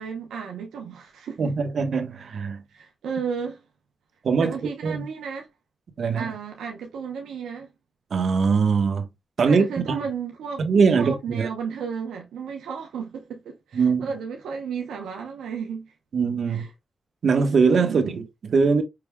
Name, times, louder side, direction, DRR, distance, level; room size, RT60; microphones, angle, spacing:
voice 1, 0.0-1.5 2.7-3.6 4.4-5.5 6.2-7.7 9.4-10.7 10.9-15.9 16.5-16.7 17.8-18.2, right 6 dB, 90° right, 0.8 m, -33 dB
voice 2, 1.4-2.6 4.2-4.6 4.8-5.0 6.0-6.3 8.1-9.1 9.4-9.7 10.6-11.5 13.7-14.1 16.1-16.6 17.2-18.8, right 5 dB, 65° right, 1.1 m, -21 dB
5.8 x 3.3 x 2.2 m
cardioid pair, 55°, 0 cm